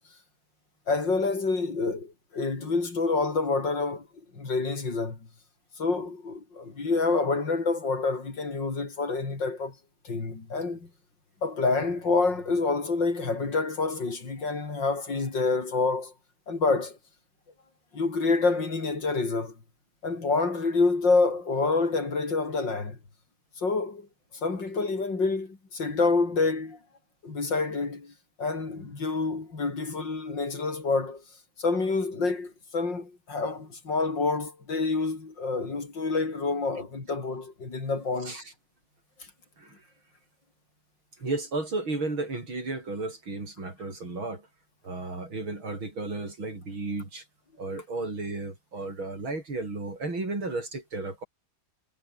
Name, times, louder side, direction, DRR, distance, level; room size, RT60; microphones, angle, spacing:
voice 1, 0.9-4.1 4.3-5.2 5.8-9.7 10.0-10.9 11.4-16.1 16.5-17.0 17.9-19.6 20.0-23.0 23.6-24.1 24.3-26.8 27.2-28.1 28.4-31.2 31.6-38.4, left 3 dB, 65° left, 4.7 m, -27 dB
voice 2, 41.2-44.5 44.8-47.2 47.6-51.2, right 2 dB, 85° right, 7.6 m, -33 dB
omnidirectional pair, 2.2 m